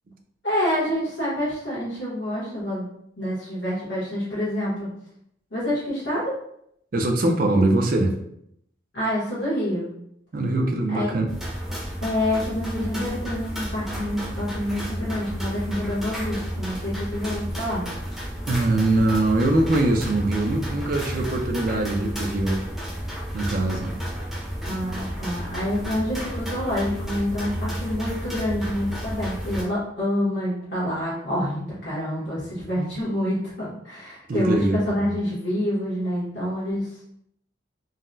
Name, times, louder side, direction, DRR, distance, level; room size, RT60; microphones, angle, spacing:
voice 1, 0.4-2.9 3.2-4.9 5.5-6.4 8.9-9.9 10.9-11.2 12.0-17.8 24.6-36.9, left 1 dB, 65° left, -9 dB, 1.2 m, -27 dB
voice 2, 6.9-8.2 10.3-11.3 18.5-22.6 23.3-24.0 34.3-34.8, right 2 dB, 50° right, 3 dB, 0.4 m, -22 dB
sound 1, 11.3-29.6, equal, ahead, 0.6 m, -32 dB
3.9 x 2.1 x 2.6 m, 0.73 s
head